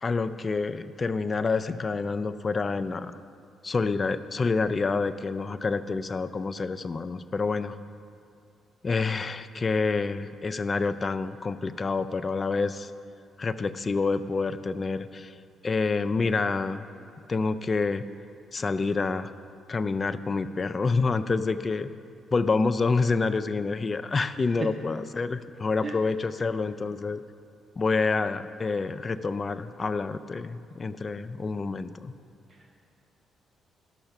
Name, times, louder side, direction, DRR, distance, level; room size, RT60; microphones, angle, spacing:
voice 1, 0.0-3.2 3.6-7.8 8.8-12.9 13.4-15.4 15.6-16.9 17.3-18.0 18.5-19.3 19.7-21.9 22.3-27.2 27.8-32.1, left 4 dB, 35° left, 10 dB, 0.4 m, -28 dB
voice 2, 24.4-24.7 25.8-26.0 32.5-32.8, right 4 dB, 40° right, 3 dB, 0.6 m, -36 dB
11.5 x 6.4 x 5.9 m, 2.4 s
cardioid pair, 90°, 0 cm